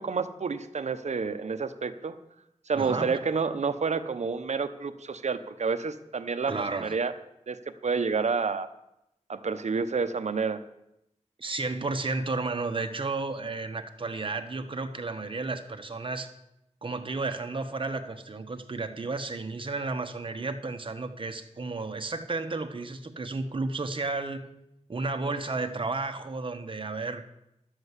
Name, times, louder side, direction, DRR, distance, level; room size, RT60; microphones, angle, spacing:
voice 1, 0.0-2.1 2.7-7.1 7.5-7.6 7.8-8.7 9.3-10.6, right 5 dB, 65° right, 10 dB, 0.9 m, -29 dB
voice 2, 2.7-3.3 6.5-6.9 11.4-16.3 16.8-24.5 24.9-27.2, right 3 dB, 45° right, 6 dB, 1.2 m, -32 dB
12.0 x 7.7 x 8.2 m, 0.85 s
wide cardioid pair, 110°, 12 cm